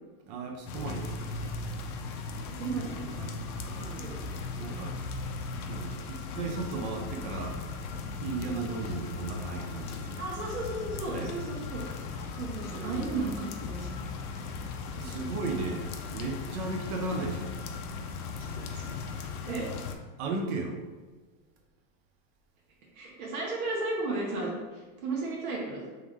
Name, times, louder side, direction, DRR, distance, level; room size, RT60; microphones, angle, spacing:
voice 1, 0.3-1.4 4.4-5.0 5.7-7.6 8.0-10.3 11.1-11.4 12.7-13.0 15.0-17.5 20.2-20.8, right 3 dB, 40° right, 2 dB, 0.6 m, -35 dB
sound 1, 0.7-20.0, left 4 dB, 80° left, 0.7 m, -38 dB
voice 2, 2.5-3.3 3.6-4.2 10.2-11.8 12.3-13.9 15.0-15.1 18.6-18.8 19.4-19.7 22.9-25.9, right 3 dB, 75° right, -3 dB, 1.2 m, -34 dB
3.4 x 3.1 x 3.6 m, 1.3 s
supercardioid pair, 145°, 43 cm